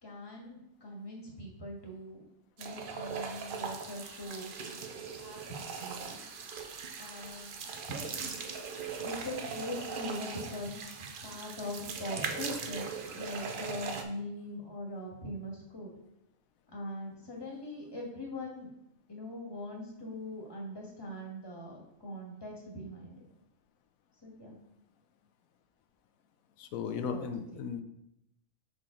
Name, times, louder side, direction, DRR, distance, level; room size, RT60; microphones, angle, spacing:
voice 1, 0.0-2.2 2.6-6.2 7.0-8.5 9.0-15.9 16.7-18.7 19.1-23.2 24.2-24.5 26.8-27.7, left 1 dB, 20° left, -1 dB, 1.3 m, -42 dB
sound 1, 2.6-14.0, right 5 dB, 55° right, 0.6 m, -40 dB
voice 2, 26.6-27.8, left 6 dB, 90° left, 8 dB, 1.0 m, -36 dB
5.6 x 4.9 x 3.7 m, 0.80 s
omnidirectional pair, 1.4 m